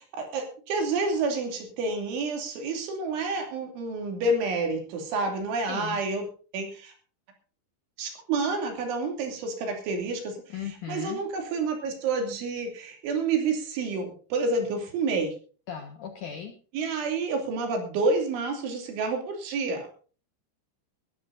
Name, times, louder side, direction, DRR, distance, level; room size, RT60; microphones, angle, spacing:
voice 1, 0.0-6.2 6.5-6.9 8.0-10.4 10.9-15.3 16.7-19.9, right 3 dB, 75° right, 4 dB, 5.2 m, -29 dB
voice 2, 5.7-6.0 10.5-11.2 15.7-16.5, left 8 dB, 65° left, 4 dB, 2.1 m, -37 dB
21.0 x 13.0 x 2.6 m, 0.39 s
omnidirectional pair, 5.5 m